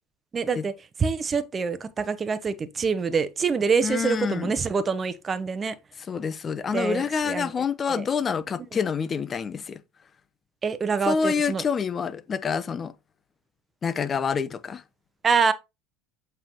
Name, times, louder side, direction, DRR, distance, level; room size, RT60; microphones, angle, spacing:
voice 1, 0.3-0.7 1.0-5.8 6.7-7.5 7.9-8.0 10.6-11.6 15.2-15.5, right 5 dB, 30° right, 1.0 m, -25 dB
voice 2, 3.8-4.5 6.1-9.8 11.0-12.9 13.8-14.8, left 6 dB, 30° left, 0.9 m, -27 dB
7.4 x 5.7 x 3.1 m
hypercardioid pair, 80°, 0 cm